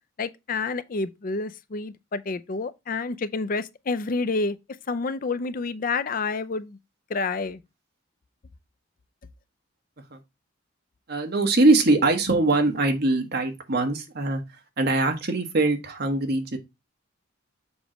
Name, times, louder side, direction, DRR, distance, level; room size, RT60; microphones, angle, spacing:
voice 1, 0.2-4.6 4.9-6.8 7.1-7.6, left 3 dB, 45° left, 0.5 m, -29 dB
voice 2, 11.1-14.4 14.8-16.6, right 2 dB, 50° right, 1.3 m, -22 dB
7.1 x 3.2 x 5.0 m
head